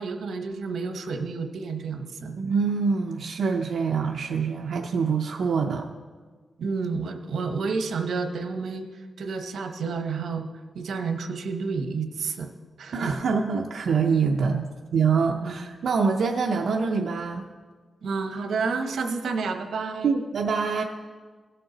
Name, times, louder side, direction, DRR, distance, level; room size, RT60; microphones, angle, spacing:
voice 1, 0.0-2.5 6.6-8.9 9.2-10.4 10.7-12.5 12.8-13.2 15.4-15.5 18.0-20.1, right 4 dB, 90° right, 6 dB, 0.9 m, -30 dB
voice 2, 2.4-5.9 12.9-14.6 14.9-17.5 20.0-20.8, right 5 dB, 70° right, 1 dB, 0.5 m, -25 dB
17.0 x 6.7 x 3.9 m, 1.5 s
wide cardioid pair, 170°, 0 cm